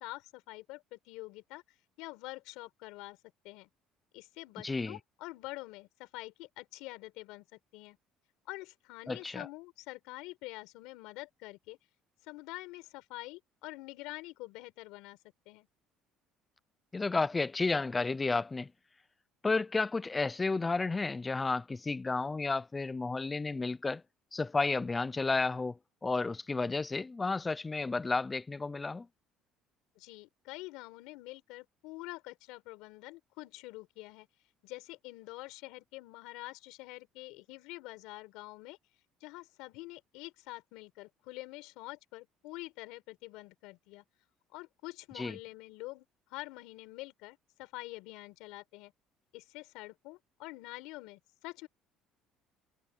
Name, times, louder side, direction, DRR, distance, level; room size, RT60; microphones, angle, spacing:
voice 1, 0.0-1.6 2.0-3.2 3.4-3.7 4.1-7.4 7.7-8.0 8.5-11.8 12.3-15.2 15.5-15.7 30.0-34.3 34.6-38.8 39.2-44.0 44.5-48.9 49.3-51.7, left 21 dB, 85° left, 5.4 m, -46 dB
voice 2, 4.6-5.0 9.1-9.5 16.9-18.7 19.4-24.0 24.3-25.8 26.0-29.1 45.1-45.4, left 3 dB, 10° left, 0.3 m, -32 dB
cardioid pair, 175°, 0 cm